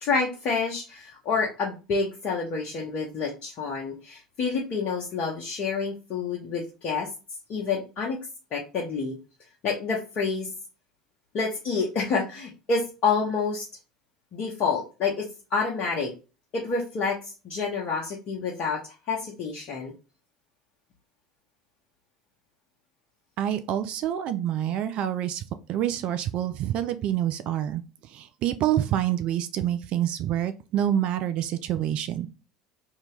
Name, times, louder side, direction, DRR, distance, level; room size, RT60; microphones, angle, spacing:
voice 1, 0.0-7.1 7.5-8.2 8.5-9.2 9.6-10.5 11.3-13.6 14.3-16.1 16.5-18.8 19.1-19.9, left 4 dB, 45° left, -3 dB, 0.8 m, -28 dB
voice 2, 23.4-25.4 25.7-32.3, right 11 dB, 45° right, 10 dB, 0.3 m, -27 dB
2.8 x 2.7 x 3.1 m, 0.32 s
figure-of-eight pair, 65°, 3 cm